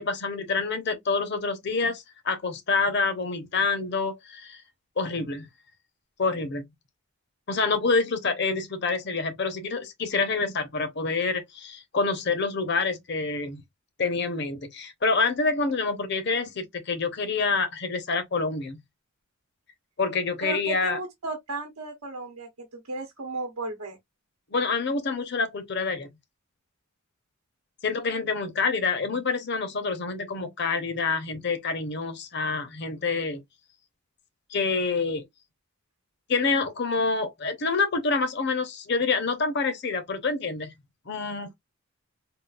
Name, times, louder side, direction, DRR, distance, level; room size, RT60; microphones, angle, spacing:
voice 1, 0.0-4.6 5.0-5.5 6.2-6.7 7.5-13.6 14.0-18.8 20.0-21.0 24.5-26.1 27.8-33.4 34.5-35.2 36.3-40.7 41.1-41.5, left 4 dB, 50° left, 0.7 m, -27 dB
voice 2, 20.4-24.0, right 3 dB, 85° right, 0.9 m, -34 dB
3.8 x 2.3 x 2.3 m
head